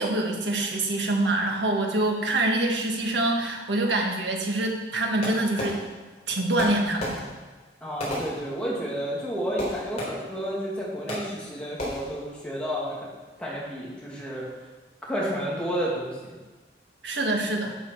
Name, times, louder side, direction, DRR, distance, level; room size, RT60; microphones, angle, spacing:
voice 1, 0.0-5.8 6.3-7.3 17.0-17.8, right 2 dB, 90° right, 1 dB, 1.6 m, -25 dB
Fireworks, 5.2-6.2 6.6-9.0 9.6-10.5 11.1-11.5 11.8-12.3, left 1 dB, 40° left, 3.3 m, -34 dB
voice 2, 7.8-13.0 13.4-14.5 15.0-16.4, equal, 5° left, -6 dB, 2.4 m, -31 dB
10.5 x 6.8 x 4.6 m, 1.3 s
head